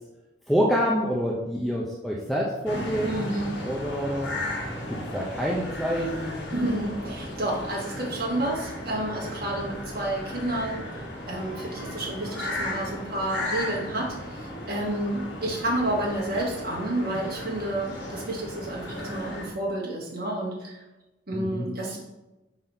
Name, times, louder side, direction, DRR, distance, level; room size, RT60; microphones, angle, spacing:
voice 1, 0.5-3.1 3.6-4.3 5.1-6.6 21.3-21.7, equal, ahead, -4 dB, 0.6 m, -27 dB
sound 1, 2.7-19.5, left 1 dB, 65° left, 1.5 m, -35 dB
voice 2, 3.0-3.6 6.5-11.0 11.3-20.8 21.3-22.0, right 1 dB, 55° right, -4 dB, 1.8 m, -30 dB
5.6 x 3.9 x 4.4 m, 1.0 s
head